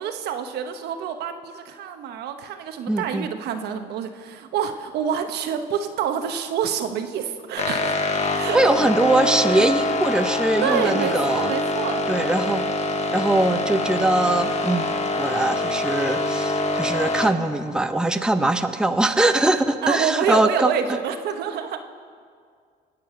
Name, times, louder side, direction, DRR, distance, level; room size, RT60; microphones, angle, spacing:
voice 1, 0.0-8.0 8.3-8.6 9.4-9.6 10.6-12.0 19.8-21.8, right 8 dB, 75° right, 7 dB, 1.2 m, -27 dB
voice 2, 2.9-3.3 8.5-11.5 12.1-12.6 13.1-20.7, right 2 dB, 5° right, 7 dB, 0.8 m, -22 dB
sound 1, 7.6-17.3, left 2 dB, 40° left, 1.3 m, -25 dB
25.5 x 8.8 x 5.8 m, 2.1 s
cardioid pair, 110°, 17 cm